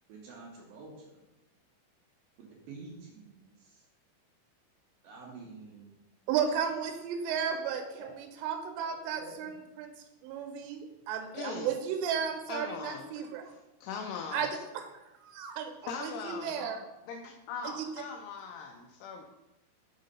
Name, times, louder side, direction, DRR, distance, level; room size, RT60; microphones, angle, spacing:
voice 1, 0.1-1.2 2.4-3.9 5.0-6.0 7.7-8.1 9.2-9.5, right 3 dB, 70° right, -1 dB, 2.4 m, -49 dB
voice 2, 6.3-7.8 8.2-9.5 9.8-9.9 10.2-13.5 14.3-16.8 17.6-17.9, right 7 dB, 90° right, 5 dB, 2.9 m, -34 dB
voice 3, 11.3-11.7 12.5-13.1 13.8-14.5 15.9-16.7 17.1-19.3, left 5 dB, 80° left, 2 dB, 2.4 m, -40 dB
6.3 x 4.0 x 5.3 m, 0.98 s
omnidirectional pair, 4.9 m